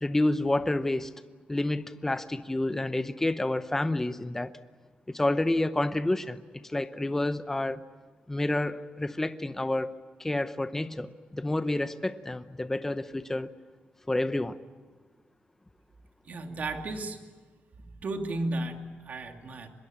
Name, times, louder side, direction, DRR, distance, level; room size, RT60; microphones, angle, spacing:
voice 1, 0.0-1.1 1.5-4.5 5.1-7.8 8.3-9.9 10.2-13.5 14.1-14.6, left 1 dB, 10° left, 11 dB, 0.8 m, -29 dB
voice 2, 16.3-17.2 18.0-19.7, right 2 dB, 50° right, 4 dB, 2.7 m, -34 dB
25.0 x 21.5 x 8.7 m, 1.4 s
wide cardioid pair, 135°, 4 cm